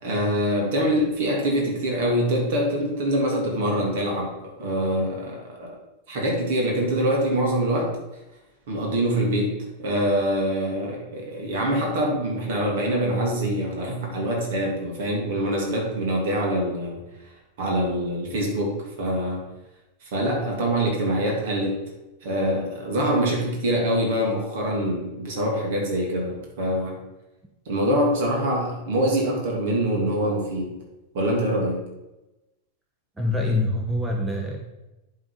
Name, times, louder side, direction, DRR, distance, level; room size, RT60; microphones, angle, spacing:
voice 1, 0.0-4.3 4.6-5.8 6.1-8.0 8.7-17.0 17.6-19.4 20.0-21.8 22.2-27.0 27.7-30.7 31.1-31.9, equal, 55° right, -1 dB, 2.5 m, -24 dB
voice 2, 33.2-34.6, left 2 dB, 10° right, 1 dB, 1.0 m, -25 dB
10.5 x 3.9 x 5.1 m, 1.0 s
figure-of-eight pair, 90°, 0 cm